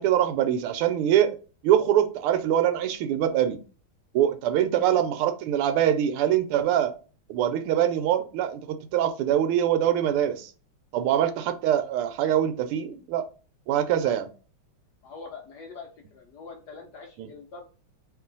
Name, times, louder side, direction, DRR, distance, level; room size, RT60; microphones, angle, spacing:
voice 1, 0.0-1.3 1.6-3.6 4.1-6.9 7.3-10.5 10.9-13.2 13.7-14.2 17.2-17.3, right 10 dB, 85° right, 10 dB, 1.5 m, -23 dB
voice 2, 15.0-17.7, left 4 dB, 70° left, 1 dB, 1.0 m, -43 dB
3.0 x 3.0 x 3.8 m, 0.36 s
omnidirectional pair, 2.4 m